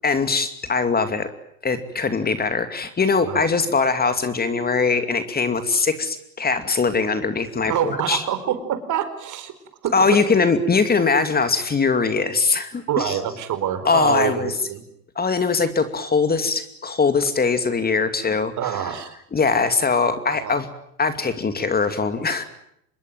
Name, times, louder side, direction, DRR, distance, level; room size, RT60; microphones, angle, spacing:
voice 1, 0.0-1.3 1.6-8.2 9.9-13.2 13.8-14.5 15.2-18.5 18.8-18.9 19.3-20.7 21.0-22.4, left 4 dB, 20° left, 10 dB, 2.6 m, -21 dB
voice 2, 7.7-9.5 9.8-10.2 10.7-10.8 12.9-14.8 18.6-19.1 20.3-20.6, right 9 dB, 45° right, 10 dB, 4.5 m, -26 dB
26.0 x 21.5 x 9.1 m, 0.76 s
hypercardioid pair, 85°, 42 cm